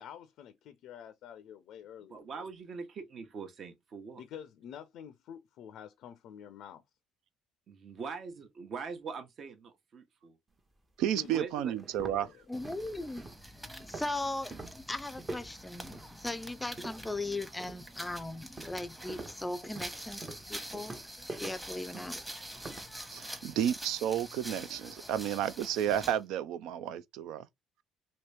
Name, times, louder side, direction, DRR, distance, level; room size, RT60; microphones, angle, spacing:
voice 1, 0.0-2.3 4.1-6.8 11.1-11.4 12.0-12.4 13.0-13.3, left 9 dB, 70° left, 0.4 m, -48 dB
voice 2, 2.1-4.2 7.7-10.4 11.3-11.7 12.0-12.1, right 5 dB, 50° right, 0.9 m, -43 dB
sound 1, 10.6-10.7 11.2-11.3 11.7-17.2 17.6-18.0 18.6-22.9, right 2 dB, 30° right, 0.8 m, -46 dB
voice 3, 11.0-12.3 23.1-27.5, right 10 dB, 75° right, 0.4 m, -32 dB
voice 4, 12.5-13.3 13.7-20.9 21.4-22.2 23.6-23.7, left 2 dB, 15° left, 0.4 m, -38 dB
sound 2, 12.5-26.2, equal, 10° right, 1.0 m, -46 dB
2.9 x 2.7 x 3.2 m
supercardioid pair, 75°, 0 cm